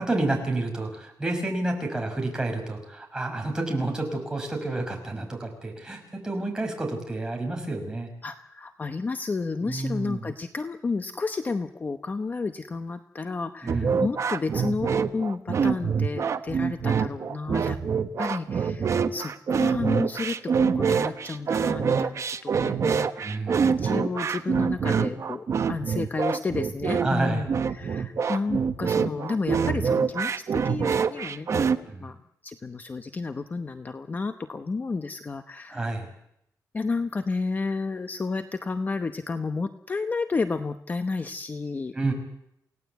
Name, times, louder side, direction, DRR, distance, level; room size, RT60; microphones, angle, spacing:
voice 1, 0.0-8.1 9.6-10.3 13.6-13.9 23.2-23.7 27.0-27.4 31.9-32.1 35.7-36.1 41.9-42.1, right 2 dB, 10° right, 1 dB, 5.8 m, -29 dB
voice 2, 8.2-17.8 18.2-32.2 32.4-36.0 36.7-42.0, left 4 dB, 25° left, 8 dB, 0.9 m, -31 dB
sound 1, 13.7-31.8, right 6 dB, 50° right, 1.2 m, -25 dB
28.5 x 17.5 x 8.2 m, 0.77 s
wide cardioid pair, 170°, 7 cm